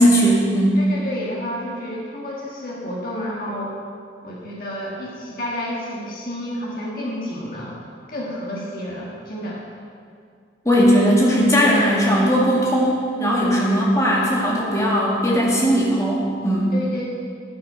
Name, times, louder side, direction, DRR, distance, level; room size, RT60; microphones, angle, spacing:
voice 1, 0.0-0.8 10.7-16.7, equal, 20° left, -5 dB, 2.0 m, -18 dB
voice 2, 0.8-3.8 4.2-7.8 8.1-9.6 13.6-13.9 16.7-17.0, left 1 dB, 55° left, -5 dB, 1.7 m, -30 dB
12.0 x 5.9 x 5.6 m, 2.2 s
head